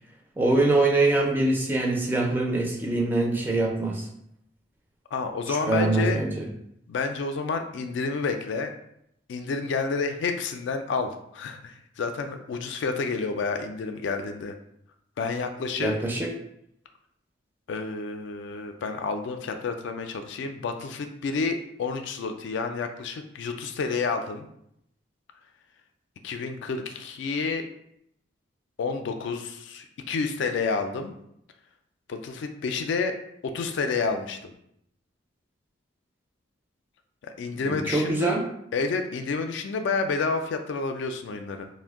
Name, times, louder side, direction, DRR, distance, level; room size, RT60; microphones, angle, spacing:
voice 1, 0.4-4.1 5.5-6.5 15.8-16.3 37.6-38.5, right 2 dB, 10° right, 0 dB, 0.4 m, -24 dB
voice 2, 5.1-6.2 6.9-8.7 9.3-14.5 15.2-15.9 17.7-24.5 26.2-27.6 28.8-31.1 32.1-33.2 33.4-34.5 37.2-38.4 38.7-41.7, left 4 dB, 65° left, 6 dB, 0.3 m, -29 dB
2.5 x 2.1 x 3.5 m, 0.73 s
head